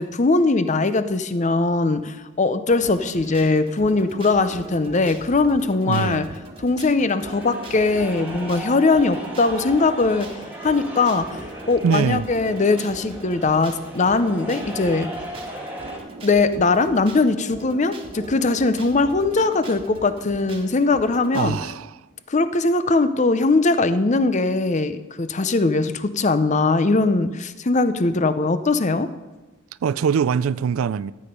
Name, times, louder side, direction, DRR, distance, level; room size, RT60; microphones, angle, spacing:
voice 1, 0.0-6.3 6.6-10.3 10.6-15.1 16.2-21.6 22.3-29.1, left 3 dB, 35° left, 0.6 m, -20 dB
sound 1, 2.7-21.6, right 2 dB, 25° right, 1.6 m, -40 dB
voice 2, 5.9-6.3 11.8-12.3 21.3-21.9 29.8-31.1, right 6 dB, 85° right, 0.4 m, -22 dB
sound 2, 7.2-16.0, equal, 10° right, 2.1 m, -37 dB
14.0 x 8.6 x 5.3 m
head